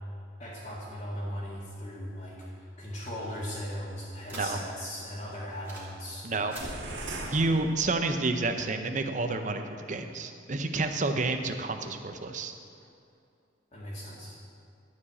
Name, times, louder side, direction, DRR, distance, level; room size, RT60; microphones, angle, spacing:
voice 1, 0.4-2.5 2.8-6.3 13.7-14.3, equal, 35° left, -9 dB, 2.0 m, -38 dB
sound 1, 2.4-4.9 5.2-6.0 6.3-6.7, right 2 dB, 10° right, 3.2 m, -48 dB
voice 2, 6.2-6.5 7.3-12.5, right 3 dB, 40° right, 6 dB, 0.7 m, -29 dB
sound 2, 6.6-8.5, right 1 dB, 75° right, 1.6 m, -39 dB
13.0 x 4.9 x 8.3 m, 2.5 s
head